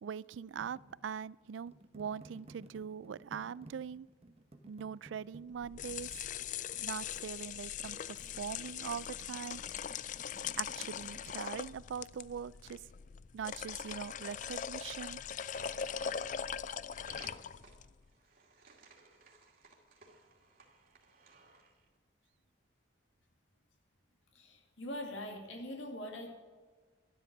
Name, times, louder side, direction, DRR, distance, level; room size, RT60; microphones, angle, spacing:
voice 1, 0.0-4.1 4.7-6.3 6.8-9.6 10.6-12.8 13.3-15.2, right 7 dB, 75° right, 22 dB, 0.3 m, -42 dB
sound 1, 0.6-11.4, right 1 dB, 30° right, 1.0 m, -57 dB
sound 2, 5.6-17.9, left 8 dB, 40° left, 0.3 m, -41 dB
sound 3, 15.5-21.9, right 3 dB, 45° right, 2.5 m, -59 dB
voice 2, 24.3-26.3, left 1 dB, 80° left, 1 dB, 2.3 m, -42 dB
12.5 x 11.5 x 6.0 m, 1.4 s
head